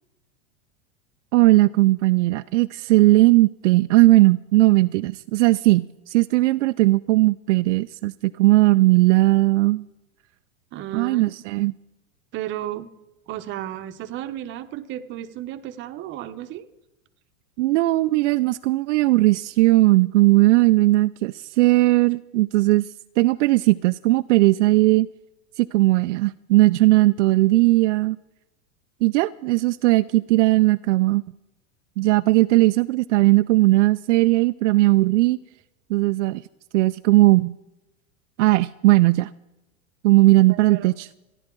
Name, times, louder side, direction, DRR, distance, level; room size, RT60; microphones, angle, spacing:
voice 1, 1.3-9.8 10.9-11.7 17.6-22.9 23.2-25.1 25.6-28.2 29.0-31.2 32.0-35.4 35.9-36.4 36.7-37.5 38.4-39.3 40.0-41.1, right 19 dB, 65° right, 11 dB, 0.5 m, -18 dB
voice 2, 10.7-11.3 12.3-12.9 13.3-16.7 40.5-41.0, right 12 dB, 30° right, 10 dB, 0.9 m, -33 dB
27.5 x 11.0 x 3.8 m, 0.98 s
supercardioid pair, 145°, 40 cm